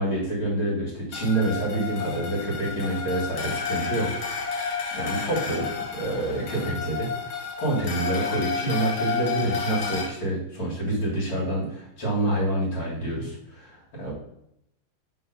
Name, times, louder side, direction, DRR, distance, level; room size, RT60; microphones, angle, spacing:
voice 1, 0.0-4.6 4.9-14.1, right 1 dB, 80° left, -6 dB, 2.7 m, -27 dB
sound 1, 1.1-10.1, left 5 dB, 60° left, 0.8 m, -31 dB
5.6 x 4.0 x 5.2 m, 0.79 s
omnidirectional pair, 2.2 m